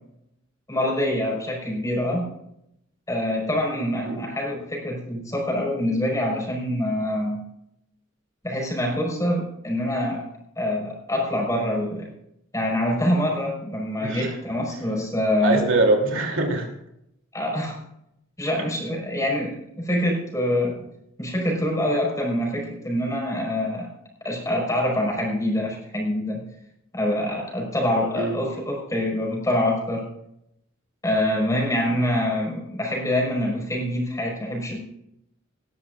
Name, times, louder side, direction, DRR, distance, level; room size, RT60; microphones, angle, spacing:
voice 1, 0.7-2.3 3.1-7.4 8.4-10.3 10.6-12.1 12.5-15.7 17.3-17.8 18.4-20.7 21.2-23.9 24.2-26.4 26.9-30.1 31.0-34.8, left 1 dB, 15° left, -1 dB, 5.3 m, -25 dB
voice 2, 14.0-14.3 15.4-16.7 28.1-28.3, right 2 dB, 70° right, 1 dB, 3.2 m, -22 dB
19.5 x 13.5 x 2.6 m, 0.78 s
head